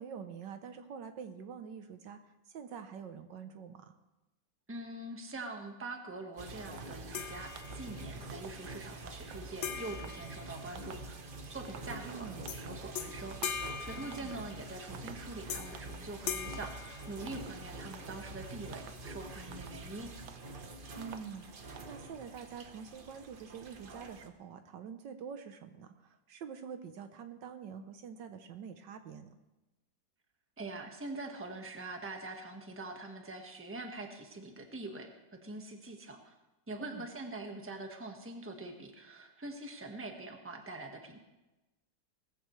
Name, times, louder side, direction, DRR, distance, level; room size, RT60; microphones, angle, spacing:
voice 1, 0.0-3.9 12.0-12.5 13.9-14.3 21.0-29.3 36.8-37.1, right 7 dB, 70° right, 8 dB, 1.5 m, -46 dB
voice 2, 4.7-11.1 11.5-20.1 30.6-36.3 36.7-41.2, right 2 dB, 10° right, 3 dB, 1.2 m, -44 dB
sound 1, 6.4-24.3, right 2 dB, 40° right, 0.8 m, -46 dB
sound 2, 6.4-6.5 6.8-7.2 7.5-7.9 8.3-8.7 9.1-9.5 9.9-10.3 10.8-11.2 11.4-12.2 12.5-12.9 13.3-13.7 14.1-14.6 14.9-15.3 15.7-16.1 16.5-16.9 17.3-17.7 17.9-18.3 18.7-19.1 19.5-19.9 20.3-20.6 21.0-21.4 21.8-22.0, right 8 dB, 90° right, 1.6 m, -53 dB
sound 3, 7.1-8.1 9.6-11.2 12.5-12.7 13.0-14.8 15.5-15.9 16.3-17.7, left 7 dB, 55° left, 0.8 m, -41 dB
19.0 x 14.5 x 3.2 m, 1.0 s
omnidirectional pair, 2.0 m